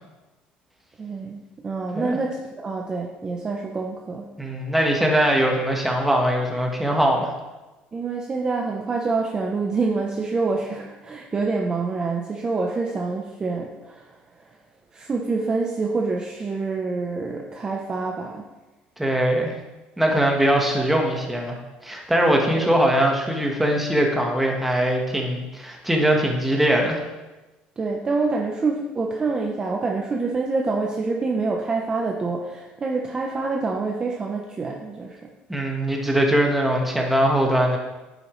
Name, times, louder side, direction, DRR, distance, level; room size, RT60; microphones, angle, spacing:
voice 1, 1.0-4.3 7.9-14.2 14.9-18.4 22.5-22.7 27.8-35.3, right 3 dB, 20° right, 0 dB, 0.7 m, -26 dB
voice 2, 4.4-7.3 19.0-19.5 20.0-27.0 35.5-37.8, right 1 dB, 5° right, 0 dB, 1.3 m, -21 dB
9.7 x 7.9 x 3.2 m, 1.1 s
cardioid pair, 150°, 4 cm